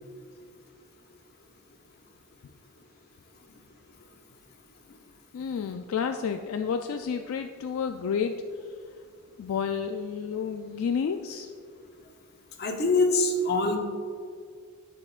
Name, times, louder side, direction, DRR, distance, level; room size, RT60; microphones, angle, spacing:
voice 1, 5.3-8.4 9.4-11.5, left 6 dB, 70° left, 6 dB, 0.3 m, -30 dB
voice 2, 12.6-13.8, left 2 dB, 50° left, 4 dB, 0.8 m, -24 dB
10.0 x 7.3 x 2.4 m, 2.1 s
head